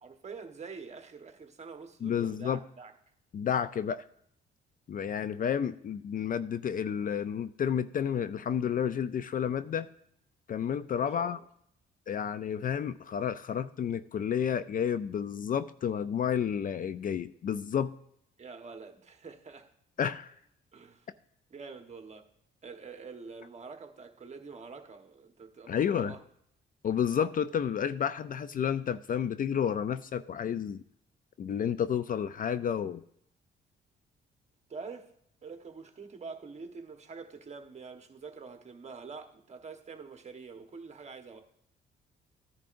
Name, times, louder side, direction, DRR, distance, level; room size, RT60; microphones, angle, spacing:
voice 1, 0.0-2.9 10.9-11.4 18.4-19.7 20.7-21.1 21.5-22.3 22.6-26.2 34.7-35.1 35.4-41.4, right 4 dB, 35° right, 1.2 m, -46 dB
voice 2, 2.0-2.6 3.3-4.0 4.9-9.9 10.5-11.4 12.1-17.9 20.0-20.3 25.7-26.1 26.8-30.8 31.4-33.0, left 8 dB, 45° left, 0.4 m, -31 dB
14.0 x 10.5 x 2.6 m
cardioid pair, 90°, 20 cm